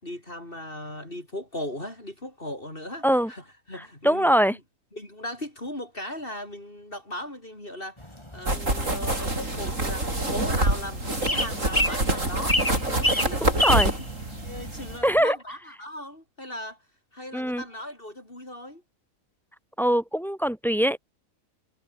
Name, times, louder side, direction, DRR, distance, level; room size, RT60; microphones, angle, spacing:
voice 1, 0.0-4.4 4.9-8.0 8.3-12.6 12.9-13.6 14.4-16.8 17.1-18.8, left 1 dB, 40° left, 6.3 m, -37 dB
voice 2, 3.7-4.6 13.4-13.9 15.0-15.4 17.3-17.6 19.8-21.0, equal, ahead, 4.0 m, -23 dB
sound 1, 8.0-15.2, left 1 dB, 20° left, 5.2 m, -30 dB
sound 2, 8.5-15.0, right 2 dB, 65° right, 7.0 m, -26 dB
omnidirectional pair, 1.5 m